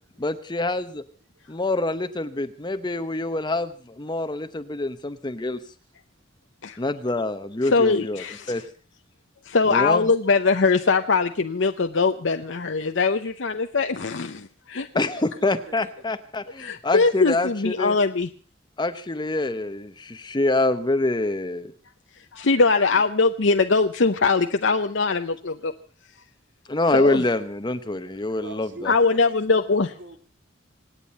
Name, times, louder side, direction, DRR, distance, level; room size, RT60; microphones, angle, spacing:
voice 1, 0.2-1.0 1.5-5.6 6.8-8.6 9.7-10.1 14.9-18.0 18.8-21.7 26.7-28.9, left 2 dB, 25° left, 10 dB, 0.8 m, -26 dB
voice 2, 7.6-8.5 9.4-14.9 16.6-18.3 22.3-25.7 26.9-27.2 28.8-29.9, left 4 dB, 80° left, 6 dB, 0.8 m, -21 dB
voice 3, 15.0-16.0 28.4-30.2, right 2 dB, 70° right, 7 dB, 2.4 m, -43 dB
26.5 x 9.1 x 5.5 m, 0.41 s
head